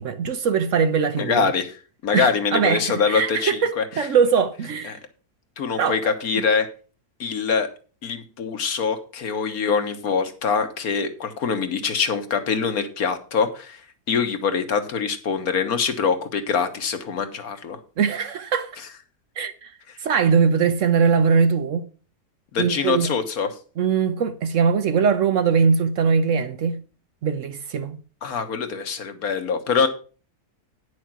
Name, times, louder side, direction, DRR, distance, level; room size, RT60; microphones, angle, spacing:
voice 1, 0.0-1.5 2.1-5.0 5.8-6.1 18.0-18.7 19.4-19.7 20.0-21.9 22.6-23.1 23.8-26.8 27.2-28.0, right 6 dB, 60° right, 1.0 m, -21 dB
voice 2, 1.2-1.8 2.0-4.1 4.9-5.0 5.6-6.7 7.2-7.7 8.0-13.8 14.1-17.8 22.5-23.5 28.2-29.9, left 5 dB, 65° left, 1.6 m, -24 dB
9.9 x 6.4 x 5.9 m
omnidirectional pair, 1.7 m